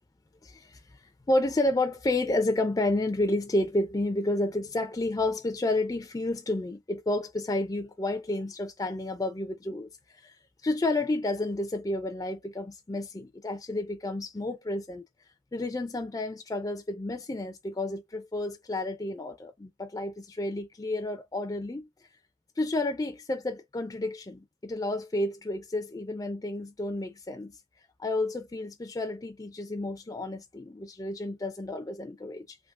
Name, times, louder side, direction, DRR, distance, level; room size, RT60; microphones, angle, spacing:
voice 1, 0.4-10.4 10.6-15.0 15.5-22.1 22.6-27.6 28.0-32.6, left 2 dB, 20° left, 0.4 m, -31 dB
3.5 x 2.7 x 2.3 m
head